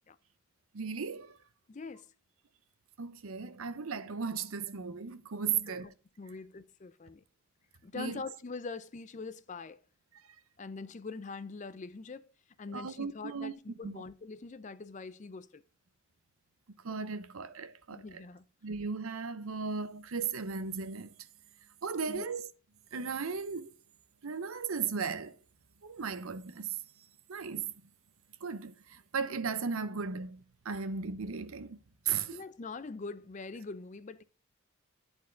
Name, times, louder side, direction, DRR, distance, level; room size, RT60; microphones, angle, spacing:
voice 1, 0.7-1.4 3.0-5.9 7.9-8.2 12.7-13.5 13.8-14.0 16.7-18.2 18.6-21.1 21.8-22.5 22.9-23.7 24.2-25.4 25.8-26.8 27.3-27.7 28.4-31.8 32.1-32.4, right 5 dB, 80° right, 0.7 m, -36 dB
voice 2, 1.7-2.1 5.5-5.8 6.2-7.2 7.8-9.8 10.6-12.3 12.6-15.6 17.9-18.4 22.1-22.3 32.3-34.2, left 4 dB, 35° left, 0.4 m, -43 dB
10.5 x 4.4 x 3.8 m
head